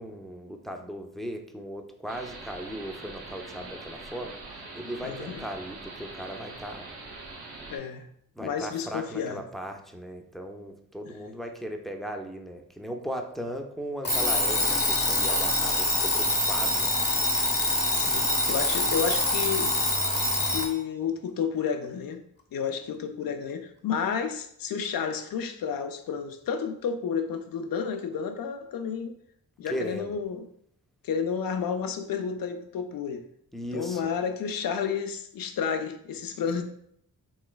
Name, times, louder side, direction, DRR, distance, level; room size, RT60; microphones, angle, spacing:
voice 1, 0.0-4.4 4.7-6.9 8.4-16.9 29.7-30.2 33.5-34.1, equal, ahead, 3 dB, 0.4 m, -37 dB
sound 1, 2.1-7.8, right 3 dB, 90° right, 0.7 m, -43 dB
voice 2, 5.0-5.4 7.7-8.1 8.4-9.4 11.1-11.2 17.9-19.7 20.5-22.2 22.5-29.1 29.6-30.5 31.0-33.2 33.7-36.6, left 6 dB, 65° left, 7 dB, 0.5 m, -31 dB
Alarm, 14.0-20.7, left 1 dB, 30° left, 0.8 m, -25 dB
3.1 x 3.1 x 2.2 m, 0.68 s
cardioid pair, 50°, 37 cm